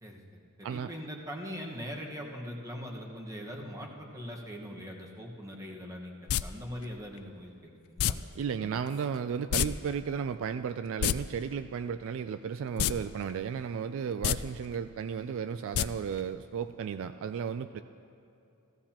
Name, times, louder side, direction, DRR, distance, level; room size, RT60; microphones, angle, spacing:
voice 1, 0.0-8.2 8.5-8.7, equal, 15° right, -1 dB, 1.3 m, -42 dB
sound 1, 6.3-6.4 8.0-8.1 9.5-9.7 9.9-10.0 10.9-11.1 12.8-12.9 13.3-13.4 14.1-14.4 15.7-15.9 16.2-16.3, left 11 dB, 80° left, 0.4 m, -26 dB
voice 2, 8.4-17.8, right 7 dB, 60° right, 11 dB, 0.3 m, -34 dB
16.0 x 15.0 x 2.9 m, 2.8 s
head